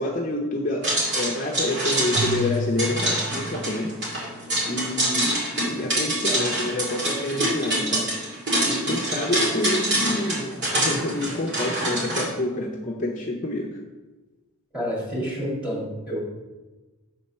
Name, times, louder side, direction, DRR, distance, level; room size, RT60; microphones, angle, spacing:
voice 1, 0.0-3.9 4.7-5.4 5.7-8.1 8.6-13.8, left 1 dB, 35° left, 0 dB, 0.7 m, -28 dB
sound 1, 0.8-12.2, right 1 dB, 50° right, 2.3 m, -25 dB
Keyboard (musical), 2.1-4.4, left 1 dB, 65° right, 0.7 m, -32 dB
voice 2, 14.7-16.2, equal, 5° right, -5 dB, 2.2 m, -29 dB
6.9 x 4.3 x 5.6 m, 1.2 s
head